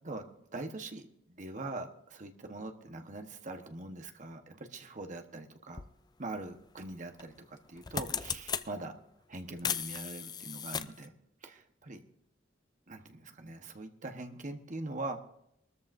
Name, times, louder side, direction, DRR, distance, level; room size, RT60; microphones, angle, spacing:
voice 1, 0.0-5.8 6.2-9.0 9.3-11.1 11.4-12.0 12.9-15.3, right 2 dB, 40° right, 5 dB, 1.2 m, -42 dB
sound 1, 5.7-5.9 7.2-7.4 7.7-8.7 9.6-11.1, left 7 dB, 20° left, 0.4 m, -36 dB
21.5 x 13.5 x 2.6 m, 0.74 s
head